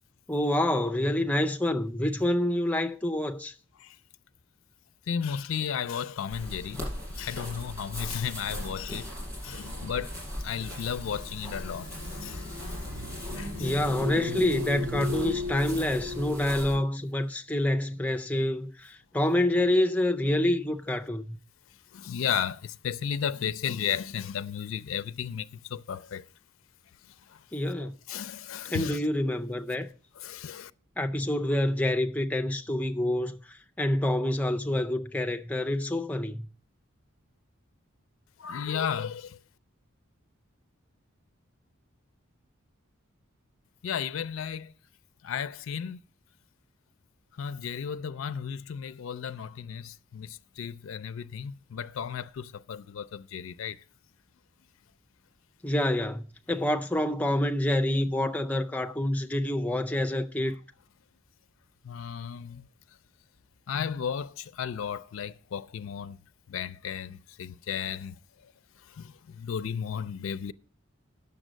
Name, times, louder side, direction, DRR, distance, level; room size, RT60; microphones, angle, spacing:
voice 1, 0.3-3.5 13.6-21.4 27.5-27.9 28.6-29.9 31.0-36.5 55.6-60.5, left 1 dB, 5° left, 0.4 m, -27 dB
voice 2, 5.1-9.1 9.4-12.5 13.4-13.7 21.9-26.3 27.3-27.4 27.8-29.0 30.2-30.7 38.4-39.4 43.8-44.7 45.2-46.0 47.4-53.8 58.8-58.9 61.8-62.7 63.7-66.2 66.5-68.2 68.9-70.5, left 8 dB, 70° left, 0.4 m, -34 dB
sound 1, 6.3-16.7, equal, 15° right, 5.0 m, -39 dB
sound 2, 8.1-16.8, left 3 dB, 80° right, 2.0 m, -38 dB
9.0 x 6.9 x 6.2 m
head